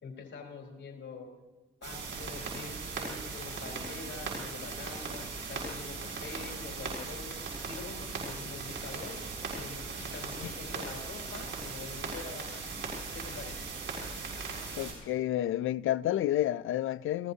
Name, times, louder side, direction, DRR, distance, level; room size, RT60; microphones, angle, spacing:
voice 1, 0.0-1.3 1.8-7.3 7.7-9.2 9.5-12.7 13.1-13.6, left 4 dB, 65° left, 3.8 m, -45 dB
sound 1, 1.8-14.9, right 4 dB, 70° right, 6.8 m, -39 dB
voice 2, 14.8-17.3, left 12 dB, 85° left, 0.5 m, -30 dB
29.5 x 16.0 x 2.8 m
cardioid pair, 80°, 20 cm